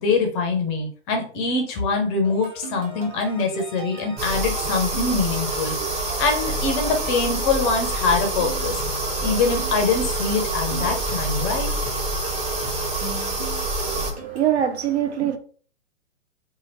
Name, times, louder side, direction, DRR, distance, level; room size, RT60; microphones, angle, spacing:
voice 1, 0.0-8.8 9.2-11.7, left 4 dB, 25° left, 0.6 m, -24 dB
sound 1, 2.2-14.6, right 3 dB, 15° right, 1.1 m, -38 dB
sound 2, 4.2-14.1, right 2 dB, 35° right, 1.4 m, -27 dB
voice 2, 13.9-15.4, right 10 dB, 60° right, 0.6 m, -24 dB
2.7 x 2.5 x 3.0 m
figure-of-eight pair, 120°, 37 cm